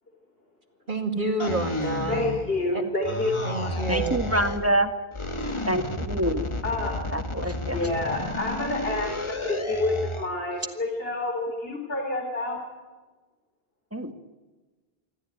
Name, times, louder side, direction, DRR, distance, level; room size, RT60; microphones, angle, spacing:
voice 1, 0.9-2.3 2.7-2.8 3.4-4.2, right 2 dB, 50° right, 4 dB, 2.6 m, -29 dB
sound 1, 1.4-2.7 3.0-4.7 5.1-10.3, left 2 dB, 30° left, 1.3 m, -32 dB
voice 2, 2.1-3.8 6.6-7.0 7.7-12.6, left 2 dB, 65° left, 1 dB, 4.3 m, -28 dB
voice 3, 3.9-4.9 5.7-6.5 7.1-7.8 13.9-14.1, right 1 dB, 15° right, 6 dB, 1.8 m, -26 dB
26.5 x 13.5 x 9.3 m, 1.2 s
omnidirectional pair, 1.1 m